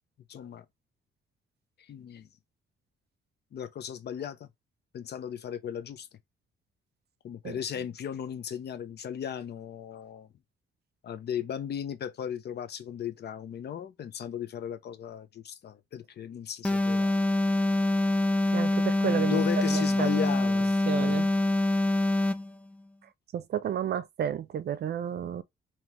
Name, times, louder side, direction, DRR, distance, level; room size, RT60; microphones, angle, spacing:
voice 1, 0.3-0.6 1.9-2.3 3.5-4.5 4.9-6.1 7.2-10.3 11.0-17.2 19.0-20.7 21.0-21.2, left 9 dB, 55° left, 0.7 m, -36 dB
sound 1, 16.6-22.5, left 2 dB, 5° left, 0.4 m, -25 dB
voice 2, 18.5-19.4 19.7-20.2 20.9-21.3 23.3-25.4, right 9 dB, 55° right, 0.6 m, -32 dB
3.5 x 3.0 x 3.0 m
cardioid pair, 90°, 20 cm